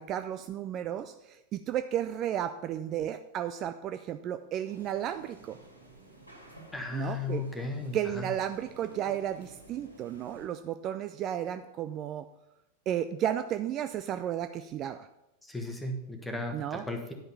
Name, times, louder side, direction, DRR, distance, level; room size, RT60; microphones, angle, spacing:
voice 1, 0.0-5.6 6.9-7.4 7.9-12.3 12.9-15.1 16.5-16.8, right 10 dB, 35° right, 10 dB, 0.4 m, -33 dB
sound 1, 4.6-10.5, right 2 dB, 85° left, 1.9 m, -52 dB
voice 2, 6.7-8.3 15.4-17.1, left 3 dB, 5° left, 3 dB, 1.4 m, -35 dB
10.5 x 5.5 x 5.6 m, 0.89 s
figure-of-eight pair, 90°, 0 cm